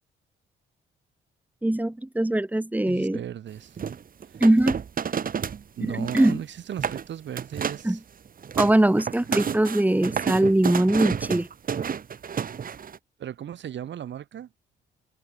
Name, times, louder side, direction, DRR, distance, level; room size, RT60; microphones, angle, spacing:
voice 1, 1.6-3.2 4.4-4.8 5.8-6.4 7.8-8.0 8.6-11.5, right 1 dB, 10° right, 3.0 m, -22 dB
voice 2, 2.9-3.8 4.3-4.4 5.8-8.0 13.2-14.5, right 10 dB, 65° right, 7.7 m, -36 dB
sound 1, 3.8-5.6 5.9-6.4 6.7-7.0 7.4-7.9 8.3-13.0, right 7 dB, 45° right, 2.0 m, -30 dB
open air
cardioid pair, 90°, 20 cm